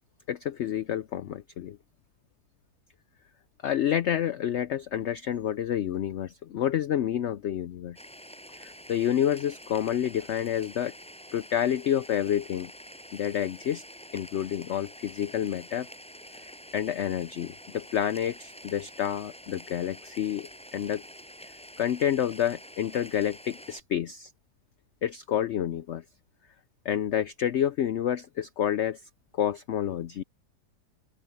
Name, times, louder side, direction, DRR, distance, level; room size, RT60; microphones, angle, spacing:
voice 1, 0.3-1.8 3.6-8.0 8.6-10.9 11.3-12.7 13.1-13.8 14.1-15.9 16.7-21.0 21.8-24.3 25.0-26.0 26.9-29.0 29.4-30.2, left 10 dB, 90° left, 0.6 m, -29 dB
sound 1, 8.0-23.8, equal, 5° left, 7.1 m, -47 dB
open air
omnidirectional pair, 1.8 m